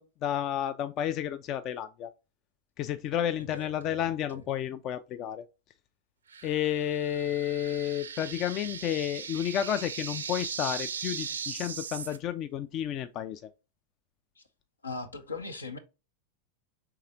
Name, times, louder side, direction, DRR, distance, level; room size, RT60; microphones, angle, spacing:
voice 1, 0.0-2.1 2.8-5.4 6.4-13.5, left 10 dB, 40° left, 0.3 m, -31 dB
voice 2, 3.5-4.4 14.4-14.5 14.8-15.8, left 3 dB, 80° left, 0.7 m, -40 dB
sound 1, 6.3-12.2, right 6 dB, 75° right, 0.4 m, -39 dB
4.7 x 3.4 x 2.7 m
figure-of-eight pair, 90°, 0 cm